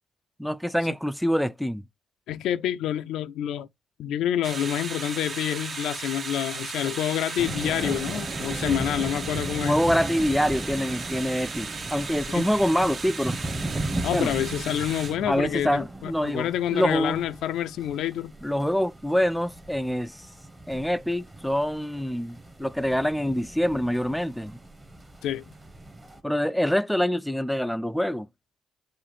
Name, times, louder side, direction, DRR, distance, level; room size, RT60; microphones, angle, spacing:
voice 1, 0.4-1.8 8.6-8.8 9.6-13.4 14.1-14.3 15.3-17.2 18.4-20.3 20.7-24.6 26.2-28.3, equal, ahead, 0.4 m, -25 dB
voice 2, 2.3-3.7 4.0-9.7 12.3-12.5 14.0-18.3 25.2-25.4, left 11 dB, 85° left, 0.4 m, -28 dB
sound 1, 4.4-15.2, right 4 dB, 45° right, 1.2 m, -36 dB
sound 2, 7.4-26.2, right 2 dB, 20° right, 1.4 m, -37 dB
7.4 x 2.5 x 4.9 m
cardioid pair, 90°, 0 cm